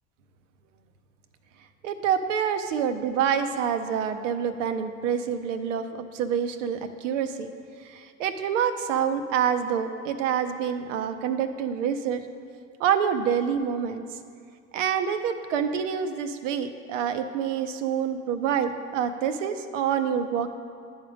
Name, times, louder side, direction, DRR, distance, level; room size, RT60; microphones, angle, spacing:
voice 1, 1.8-7.5 7.8-12.2 12.8-14.0 14.7-20.5, right 8 dB, 90° right, 9 dB, 0.5 m, -27 dB
10.5 x 3.6 x 5.0 m, 2.3 s
hypercardioid pair, 80°, 37 cm